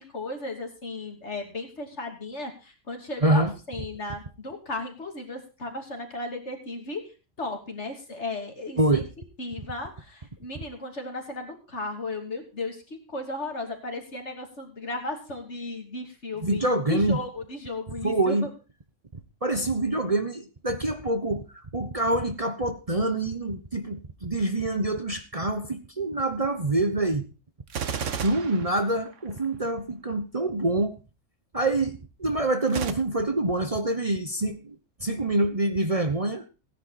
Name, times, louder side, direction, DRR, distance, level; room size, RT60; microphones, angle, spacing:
voice 1, 0.0-7.0 7.4-9.0 9.4-18.5, left 2 dB, 60° left, 3 dB, 3.2 m, -35 dB
voice 2, 3.2-3.5 8.8-9.1 16.4-17.2 18.0-18.5 19.4-21.4 21.7-27.3 28.2-31.0 31.5-34.7 35.0-36.5, right 2 dB, 30° right, 8 dB, 1.1 m, -26 dB
Gunshot gunfire, 27.7-29.5 32.7-32.9, right 7 dB, 70° right, 1.4 m, -32 dB
17.0 x 10.0 x 4.2 m, 0.32 s
omnidirectional pair, 1.3 m